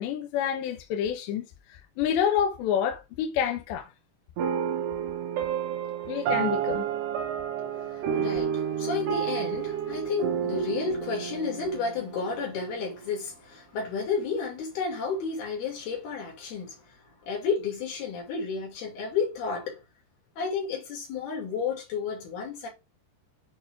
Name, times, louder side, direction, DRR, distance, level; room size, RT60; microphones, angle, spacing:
voice 1, 0.0-1.5 2.0-3.9 6.1-6.9, left 9 dB, 80° left, 3.3 m, -28 dB
sound 1, 4.4-12.9, right 8 dB, 75° right, 3.4 m, -30 dB
voice 2, 7.6-19.8 20.4-22.7, left 5 dB, 60° left, 4.7 m, -32 dB
11.5 x 4.1 x 3.6 m
omnidirectional pair, 5.0 m